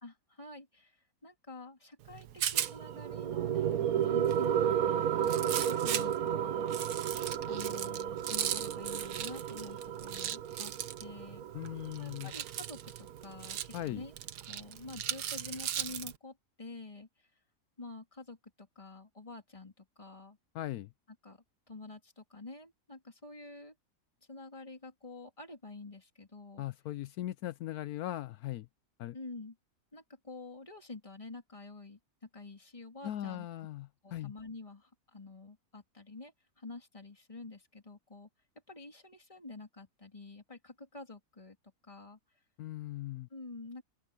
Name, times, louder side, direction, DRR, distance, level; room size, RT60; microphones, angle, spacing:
voice 1, 0.0-7.1 7.5-10.7 11.0-11.5 12.0-14.1 14.5-17.3 17.8-20.4 21.2-23.7 24.3-26.6 29.1-29.5 29.9-33.5 34.0-38.3 38.7-41.6 41.8-42.2 43.3-43.8, left 3 dB, 20° left, 3.2 m, -48 dB
Rattle, 2.0-16.2, right 10 dB, 85° right, 1.5 m, -39 dB
sound 1, 2.6-13.6, right 9 dB, 65° right, 1.3 m, -33 dB
voice 2, 11.5-12.3 13.7-14.0 20.5-20.9 26.6-28.7 29.0-29.2 33.0-34.3 42.6-43.3, left 14 dB, 75° left, 1.0 m, -39 dB
omnidirectional pair, 1.7 m